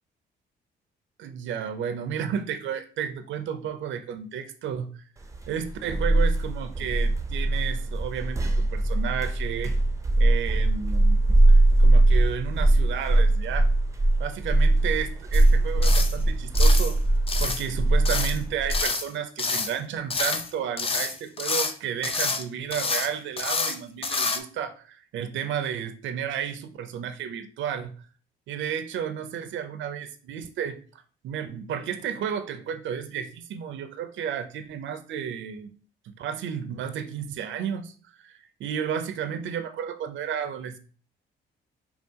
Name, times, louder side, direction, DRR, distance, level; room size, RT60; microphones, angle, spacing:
voice 1, 1.2-5.0 5.5-9.7 10.2-11.2 11.5-13.7 14.2-17.0 17.4-28.0 28.5-30.8 31.2-35.7 36.2-40.8, right 8 dB, 75° right, 10 dB, 0.6 m, -32 dB
sound 1, 5.3-18.8, right 2 dB, 15° right, 0.6 m, -21 dB
sound 2, 15.3-15.5 15.8-16.2 16.5-16.9 17.3-17.7 18.0-18.4 18.7-19.1 19.4-19.7 20.1-20.5 20.8-21.7 22.0-22.4 22.7-23.1 23.4-23.8 24.0-24.4, left 4 dB, 30° left, 0.5 m, -28 dB
5.6 x 2.4 x 2.8 m, 0.41 s
cardioid pair, 90°, 20 cm